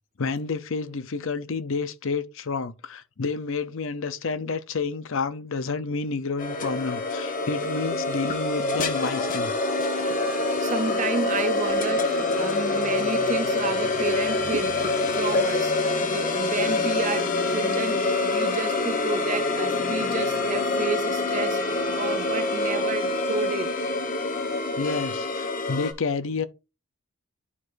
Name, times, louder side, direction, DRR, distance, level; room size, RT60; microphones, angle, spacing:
voice 1, 0.2-9.5 9.9-10.2 24.8-26.5, left 4 dB, 60° left, 0.6 m, -30 dB
sound 1, 6.4-25.9, left 3 dB, 35° left, 1.1 m, -26 dB
voice 2, 9.9-23.7, right 4 dB, 35° right, 0.5 m, -31 dB
11.0 x 4.7 x 2.6 m
head